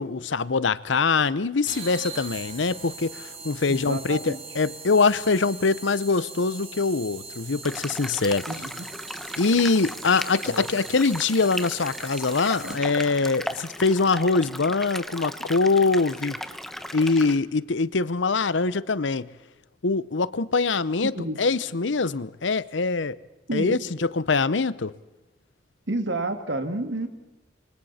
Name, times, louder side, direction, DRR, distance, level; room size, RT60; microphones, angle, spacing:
voice 1, 0.0-8.5 9.4-16.4 16.9-19.3 19.8-23.2 23.5-24.9, left 4 dB, 85° left, 0.8 m, -23 dB
sound 1, 1.7-13.1, right 4 dB, 30° right, 4.3 m, -41 dB
voice 2, 3.7-4.4 8.5-8.9 10.4-10.7 12.6-12.8 21.1-21.4 23.5-23.8 25.9-27.1, right 2 dB, 80° right, 2.3 m, -30 dB
sound 2, 7.6-17.4, equal, ahead, 0.9 m, -36 dB
27.0 x 24.5 x 4.3 m
head